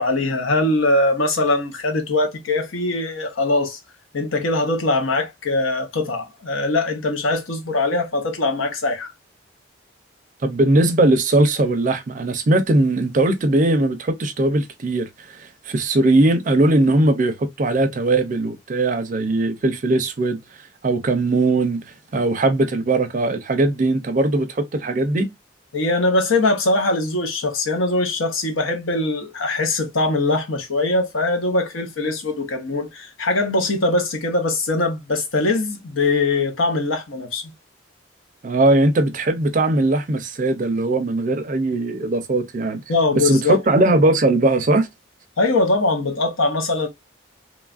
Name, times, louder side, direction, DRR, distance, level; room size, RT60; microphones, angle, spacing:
voice 1, 0.0-3.8 4.1-9.1 25.7-37.4 42.9-43.6 45.4-46.9, left 2 dB, 90° left, 0.8 m, -21 dB
voice 2, 10.4-15.1 15.7-20.4 20.8-21.8 22.1-25.3 38.4-42.8 43.1-44.9, right 2 dB, 40° right, 0.4 m, -19 dB
3.0 x 2.3 x 2.3 m
head